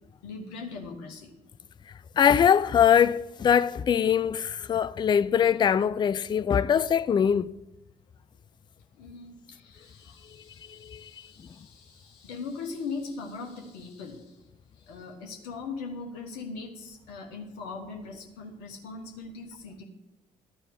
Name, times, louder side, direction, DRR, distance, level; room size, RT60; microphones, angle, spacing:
voice 1, 0.2-1.3 9.0-14.4 14.8-19.8, left 4 dB, 70° left, 1.2 m, -40 dB
voice 2, 2.2-7.5 10.7-11.1, left 8 dB, 25° left, 0.3 m, -22 dB
13.0 x 4.4 x 8.1 m
figure-of-eight pair, 45°, 20 cm